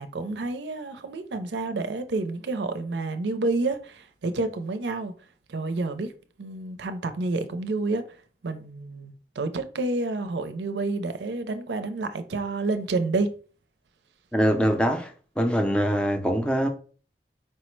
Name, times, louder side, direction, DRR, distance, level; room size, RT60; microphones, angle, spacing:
voice 1, 0.0-5.1 5.5-6.1 6.4-8.0 8.4-13.3, right 3 dB, 80° right, 0.5 m, -29 dB
voice 2, 14.3-15.1 15.4-16.7, equal, 5° left, 0.5 m, -23 dB
4.5 x 2.1 x 4.4 m
head